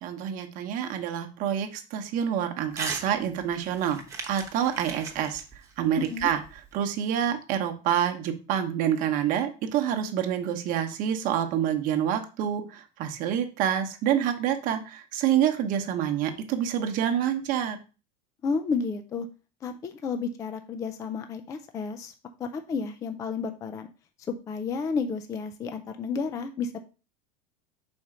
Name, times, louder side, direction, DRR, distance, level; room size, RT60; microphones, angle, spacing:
voice 1, 0.0-5.4 5.8-17.8, right 9 dB, 40° right, 5 dB, 0.9 m, -27 dB
Crumpling crinkling / Tearing, 2.7-3.1 3.4-6.7, right 4 dB, 15° right, 1.0 m, -38 dB
voice 2, 6.0-6.3 18.4-19.3 19.6-22.1 22.4-23.9 24.3-26.8, left 5 dB, 15° left, 8 dB, 0.3 m, -31 dB
5.3 x 4.4 x 4.9 m, 0.33 s
supercardioid pair, 160°, 21 cm